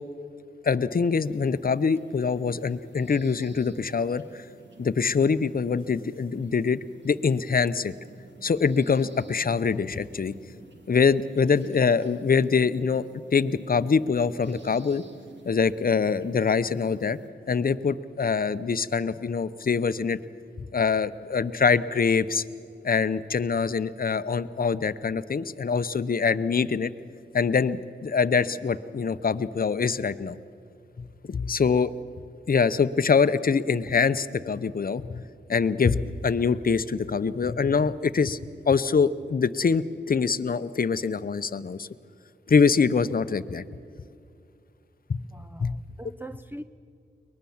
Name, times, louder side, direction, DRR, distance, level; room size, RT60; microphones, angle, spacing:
voice 1, 0.6-4.5 4.8-7.9 8.4-10.3 10.9-13.1 13.3-15.0 15.4-17.2 17.5-20.2 20.7-22.4 22.8-26.9 27.3-30.4 31.0-31.9 32.5-35.2 35.5-38.4 38.7-41.9 42.5-43.6 45.1-45.2 45.6-45.8, left 5 dB, 50° left, 13 dB, 0.7 m, -24 dB
sound 1, 1.1-17.3, right 3 dB, 70° right, 2.0 m, -51 dB
voice 2, 45.2-46.6, right 1 dB, 10° right, 8 dB, 0.6 m, -43 dB
23.0 x 20.0 x 7.2 m, 2.4 s
cardioid pair, 60°, 20 cm